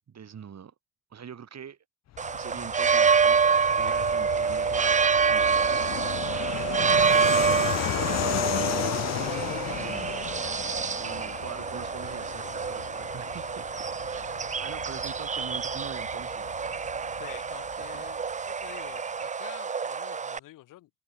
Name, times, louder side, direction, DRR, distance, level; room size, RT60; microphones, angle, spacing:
voice 1, 0.1-0.7 1.1-1.8 2.3-3.4 3.8-5.9 6.3-10.2 10.4-16.5 17.9-18.0, right 8 dB, 50° right, 3.1 m, -44 dB
Fixed-wing aircraft airplane, 2.1-18.3, left 13 dB, 55° left, 0.6 m, -35 dB
sound 1, 2.2-20.4, right 6 dB, 20° right, 0.6 m, -27 dB
voice 2, 17.2-20.9, left 15 dB, 75° left, 4.4 m, -48 dB
hypercardioid pair, 40°, 33 cm